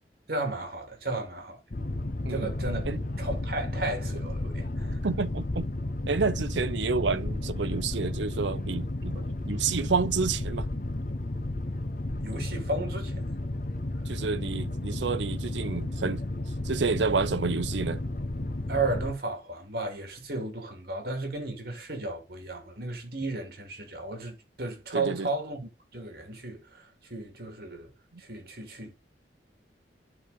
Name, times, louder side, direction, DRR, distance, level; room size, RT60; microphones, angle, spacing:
voice 1, 0.3-1.6 2.3-2.8 3.2-5.0 12.2-13.1 18.7-27.9 28.2-28.9, right 2 dB, 55° right, 2.5 m, -34 dB
Boat Water vehicle, 1.7-19.1, left 1 dB, 50° left, 0.9 m, -32 dB
voice 2, 5.0-5.7 6.1-10.7 14.1-16.2 16.6-18.0 24.9-25.3, right 4 dB, 90° right, 0.6 m, -29 dB
11.0 x 3.9 x 4.0 m
head